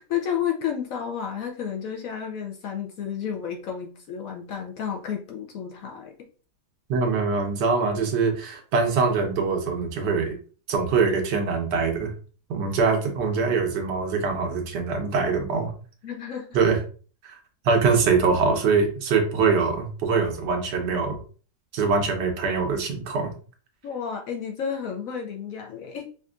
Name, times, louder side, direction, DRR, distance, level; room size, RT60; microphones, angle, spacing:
voice 1, 0.0-6.1 16.0-16.6 23.8-26.1, left 8 dB, 65° left, 2 dB, 0.9 m, -31 dB
voice 2, 6.9-10.3 10.7-12.1 12.5-15.7 16.5-16.8 17.2-17.3 17.6-21.2 21.7-23.3, right 4 dB, 80° right, 4 dB, 1.4 m, -23 dB
5.1 x 2.5 x 2.4 m, 0.40 s
omnidirectional pair, 1.8 m